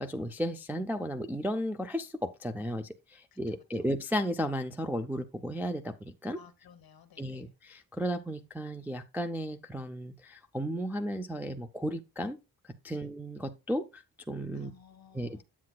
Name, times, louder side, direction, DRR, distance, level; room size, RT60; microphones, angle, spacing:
voice 1, 0.0-6.4 7.2-12.4 12.8-14.7 15.1-15.4, equal, 5° right, 0.3 m, -34 dB
voice 2, 3.5-3.9 6.3-7.5 12.9-13.1 14.5-15.4, left 6 dB, 60° left, 1.2 m, -57 dB
8.4 x 7.7 x 2.2 m
wide cardioid pair, 170°, 41 cm